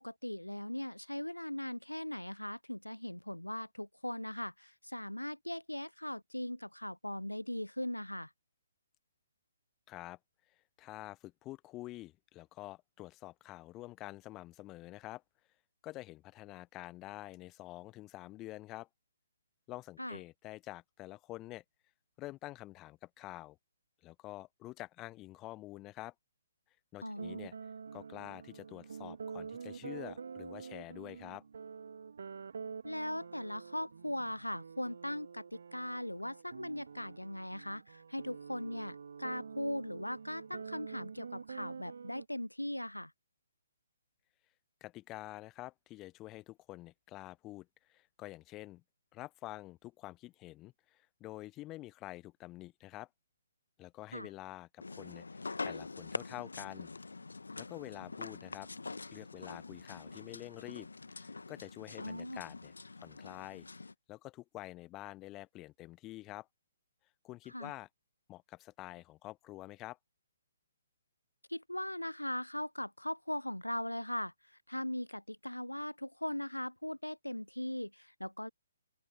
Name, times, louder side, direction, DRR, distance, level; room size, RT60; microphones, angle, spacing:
voice 1, 0.0-8.3 20.0-20.2 27.0-27.4 32.8-43.1 54.1-54.3 62.0-62.4 67.5-67.7 71.5-78.5, left 1 dB, 85° left, 0.7 m, -39 dB
voice 2, 9.9-10.2 10.8-15.2 15.8-18.9 19.7-21.6 22.2-23.6 24.0-26.1 26.9-27.5 27.9-31.4 44.8-48.8 49.1-53.1 53.8-56.9 57.6-58.7 59.1-60.9 61.1-63.7 64.1-66.5 67.2-67.9 68.3-70.0, left 17 dB, 20° left, 1.0 m, -48 dB
sound 1, 27.2-42.2, right 6 dB, 55° right, 2.4 m, -47 dB
sound 2, 54.8-63.9, left 3 dB, 70° left, 1.5 m, -45 dB
open air
figure-of-eight pair, 130°, 0 cm